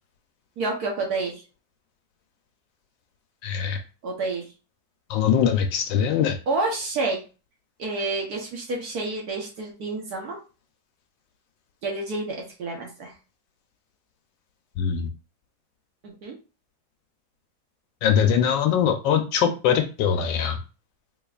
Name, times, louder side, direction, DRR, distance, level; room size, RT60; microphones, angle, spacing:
voice 1, 0.6-1.3 4.0-4.5 6.5-7.2 7.8-10.4 11.8-13.1 16.0-16.4, right 3 dB, 60° right, -1 dB, 1.3 m, -29 dB
voice 2, 3.4-3.8 5.1-6.4 14.8-15.1 18.0-20.6, left 8 dB, 75° left, 5 dB, 1.2 m, -22 dB
3.8 x 3.4 x 2.3 m, 0.33 s
omnidirectional pair, 2.2 m